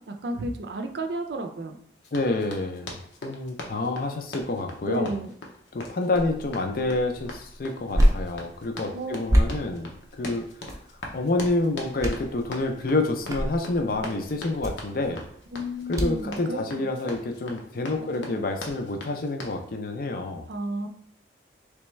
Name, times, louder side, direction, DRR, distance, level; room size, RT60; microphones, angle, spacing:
voice 1, 0.0-1.8 4.8-5.3 8.9-9.2 15.5-16.6 17.0-17.2 18.0-18.4 20.5-20.9, right 1 dB, 70° right, 5 dB, 0.5 m, -32 dB
Run, 2.0-19.6, left 2 dB, 85° left, 0.8 m, -41 dB
voice 2, 2.1-2.9 3.2-5.1 5.7-9.9 10.2-10.4 11.1-15.2 15.9-20.4, left 2 dB, 50° left, 5 dB, 0.5 m, -28 dB
sound 1, 6.1-16.3, equal, 15° right, 0.4 m, -29 dB
3.3 x 3.3 x 3.1 m, 0.65 s
head